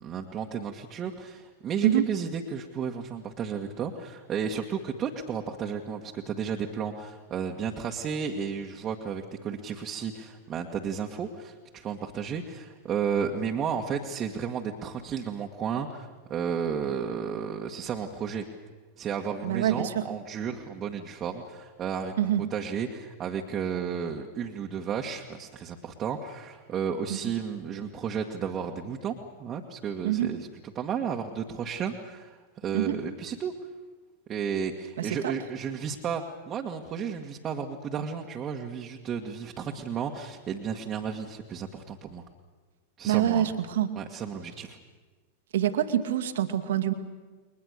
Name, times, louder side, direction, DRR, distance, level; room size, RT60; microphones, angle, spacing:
voice 1, 0.0-18.4 19.0-33.5 34.3-42.2 43.0-43.5 44.0-44.8, right 7 dB, 30° right, 1 dB, 2.0 m, -33 dB
voice 2, 19.4-20.0 22.2-22.4 27.1-27.2 30.0-30.3 32.7-32.9 35.0-35.3 43.1-43.9 45.5-46.9, right 11 dB, 60° right, 7 dB, 2.1 m, -26 dB
30.0 x 23.0 x 6.8 m, 1.3 s
figure-of-eight pair, 90°, 0 cm